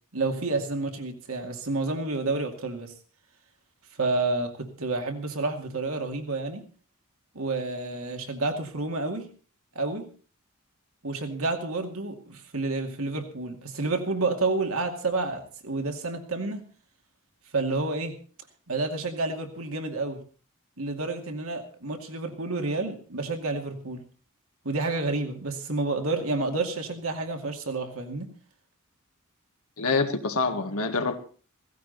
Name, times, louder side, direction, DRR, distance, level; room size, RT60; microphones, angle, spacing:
voice 1, 0.1-2.9 4.0-6.6 7.3-9.2 9.8-10.0 11.0-16.6 17.5-18.2 18.7-20.2 20.8-24.0 24.6-28.3, right 3 dB, 70° right, 2.5 m, -29 dB
voice 2, 29.8-31.2, left 3 dB, 85° left, 1.7 m, -26 dB
16.5 x 16.0 x 4.1 m
head